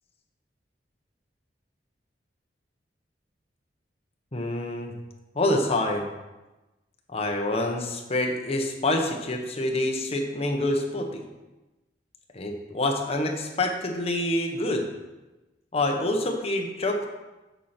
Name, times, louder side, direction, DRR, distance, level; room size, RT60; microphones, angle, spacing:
voice 1, 4.3-4.9 5.3-6.1 7.1-11.2 12.3-14.9 15.7-17.1, left 1 dB, 35° left, 2 dB, 1.0 m, -27 dB
8.1 x 5.9 x 4.3 m, 1.1 s
head